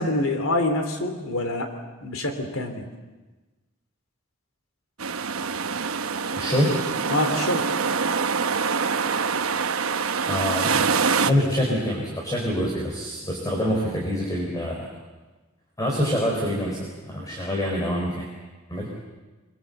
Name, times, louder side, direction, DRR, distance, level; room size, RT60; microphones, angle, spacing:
voice 1, 0.0-1.7 2.0-2.9 7.1-7.6, left 2 dB, 80° left, 6 dB, 3.2 m, -26 dB
sound 1, 5.0-11.3, right 5 dB, 90° right, 1.0 m, -25 dB
voice 2, 6.3-6.9 10.3-10.9 11.2-14.9 15.8-18.3 18.7-18.9, equal, 20° left, -1 dB, 4.2 m, -25 dB
23.0 x 22.5 x 8.0 m, 1.2 s
head